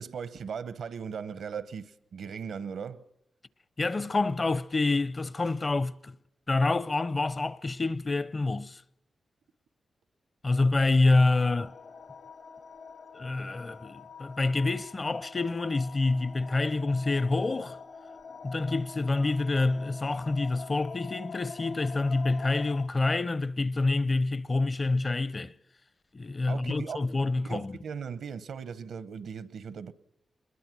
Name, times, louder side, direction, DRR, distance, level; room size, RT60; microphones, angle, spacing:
voice 1, 0.0-3.0 26.5-29.9, right 6 dB, 80° right, 0.9 m, -38 dB
voice 2, 3.8-6.2 6.5-8.8 10.4-11.7 13.1-17.8 18.4-25.5 26.1-27.8, left 3 dB, 35° left, 0.6 m, -27 dB
sound 1, 11.0-22.9, left 5 dB, 70° left, 1.7 m, -45 dB
22.5 x 21.0 x 6.2 m
cardioid pair, 85°, 0 cm